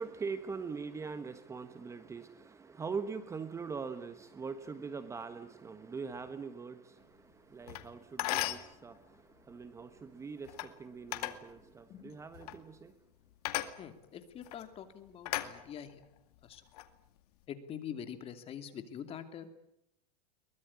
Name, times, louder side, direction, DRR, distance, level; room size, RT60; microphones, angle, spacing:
voice 1, 0.0-12.9, right 5 dB, 15° right, 1.2 m, -42 dB
sound 1, 7.7-7.8 8.2-8.7 10.5-10.7 11.1-11.4 12.3-12.6 13.5-13.7 14.4-14.6 15.3-16.0 16.6-16.9, left 15 dB, 65° left, 2.3 m, -36 dB
voice 2, 13.8-16.0 16.4-16.6 17.5-19.5, left 8 dB, 25° left, 2.8 m, -45 dB
23.0 x 20.5 x 9.8 m
supercardioid pair, 140°, 21 cm